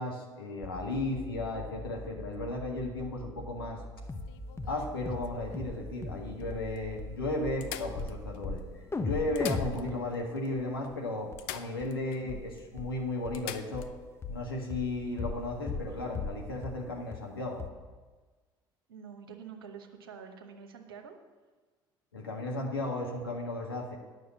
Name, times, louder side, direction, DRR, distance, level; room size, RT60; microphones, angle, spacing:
voice 1, 0.0-3.8 4.7-8.6 9.0-13.9 14.3-17.6 22.1-24.0, left 2 dB, 90° left, 0 dB, 1.5 m, -35 dB
sound 1, 0.6-9.6, equal, 5° right, 1.6 m, -46 dB
sound 2, 4.1-5.7 6.4-6.5 6.8-6.9 7.6-8.6 9.2-10.2 10.5-10.6 11.4-12.2 12.6-12.7 13.3-13.9 15.9-16.1, left 11 dB, 70° left, 0.5 m, -44 dB
sound 3, 4.1-4.3 4.6-4.8 5.1-5.3 5.5-5.8 6.0-6.2 6.5-6.6 7.0-7.1 7.5-7.6 8.0-8.1 8.4-8.6 8.9-10.9 11.3-11.4 11.8-11.9 12.3-12.4 12.8-12.9 13.3-13.4 13.7-13.9 14.2-14.4 14.7-14.9 15.2-15.4 15.7-16.4 16.6-16.8 17.1-17.2 17.6-17.7, left 4 dB, 20° left, 1.0 m, -36 dB
voice 2, 9.9-10.2 11.9-12.5 18.9-21.2, right 6 dB, 85° right, 2 dB, 1.0 m, -48 dB
9.5 x 6.5 x 7.5 m, 1.4 s
hypercardioid pair, 55°, 12 cm